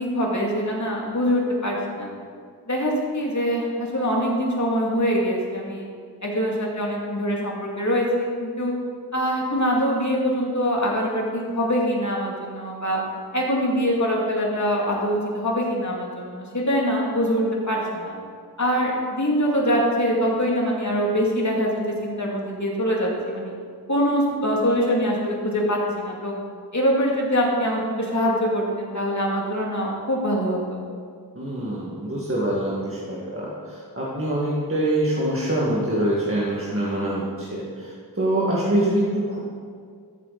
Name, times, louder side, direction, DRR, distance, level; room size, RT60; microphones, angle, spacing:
voice 1, 0.0-2.1 2.7-5.9 6.2-8.7 9.1-13.0 13.3-18.2 18.6-23.5 23.9-26.3 26.7-30.8, equal, 45° left, -3 dB, 2.5 m, -24 dB
voice 2, 31.4-39.4, right 1 dB, 35° right, -6 dB, 1.8 m, -25 dB
13.5 x 7.3 x 4.0 m, 2.1 s
wide cardioid pair, 40°, 39 cm